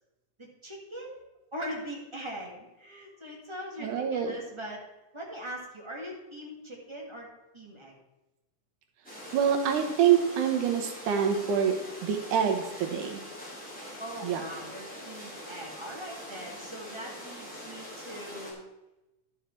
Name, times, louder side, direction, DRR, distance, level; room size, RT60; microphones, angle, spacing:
voice 1, 0.4-1.2 1.5-4.8 5.1-7.3 7.5-8.0 14.0-18.6, equal, 15° right, -2 dB, 1.2 m, -41 dB
voice 2, 3.8-4.4 9.3-11.7 12.0-13.2 14.2-14.4, right 8 dB, 90° right, 4 dB, 2.6 m, -26 dB
sound 1, 9.0-18.5, equal, 5° left, 2.7 m, -43 dB
11.5 x 6.5 x 4.5 m, 0.97 s
omnidirectional pair, 3.4 m